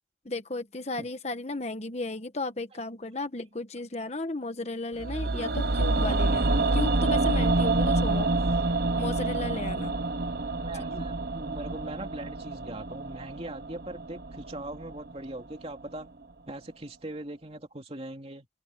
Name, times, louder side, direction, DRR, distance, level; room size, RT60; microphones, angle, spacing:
voice 1, 0.2-8.3 9.0-9.9 10.9-11.1, left 2 dB, 35° left, 1.2 m, -34 dB
sound 1, 5.0-15.1 15.4-15.5, right 2 dB, 55° right, 1.0 m, -27 dB
voice 2, 10.6-16.1 16.5-18.5, right 1 dB, 30° right, 2.9 m, -40 dB
head